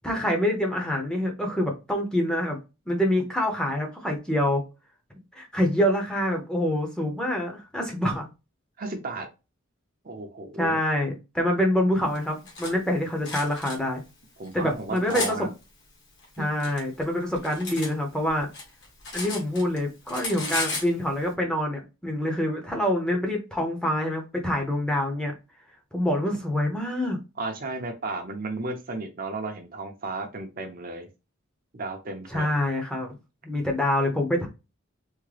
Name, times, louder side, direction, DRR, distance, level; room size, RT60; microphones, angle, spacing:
voice 1, 0.0-2.6 2.9-4.6 5.4-8.3 10.6-14.0 14.5-15.5 16.4-18.5 19.1-25.3 25.9-27.2 32.3-33.2 33.4-34.5, left 1 dB, 5° left, 1 dB, 0.7 m, -26 dB
voice 2, 8.8-9.3 10.0-10.8 14.4-15.5 16.4-16.5 27.4-31.1 31.7-32.7, right 2 dB, 45° right, 4 dB, 0.6 m, -34 dB
Cutlery silverware, 12.1-12.7 13.2-13.8 14.5-15.3 16.2-17.9 18.2-19.8 20.1-20.9, left 3 dB, 55° left, 1.2 m, -34 dB
3.6 x 2.1 x 3.3 m, 0.27 s
head